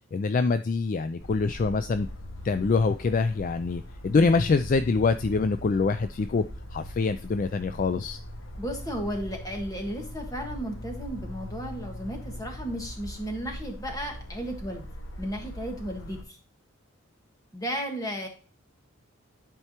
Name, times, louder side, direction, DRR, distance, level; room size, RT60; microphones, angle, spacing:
voice 1, 0.1-2.1 2.4-6.4 6.7-8.2, left 4 dB, 40° left, 11 dB, 0.3 m, -25 dB
sound 1, 1.2-16.2, equal, 65° left, 0.9 m, -41 dB
voice 2, 8.6-14.9 15.2-16.4 17.5-18.3, equal, 15° left, 2 dB, 1.5 m, -34 dB
11.0 x 4.6 x 2.9 m, 0.38 s
head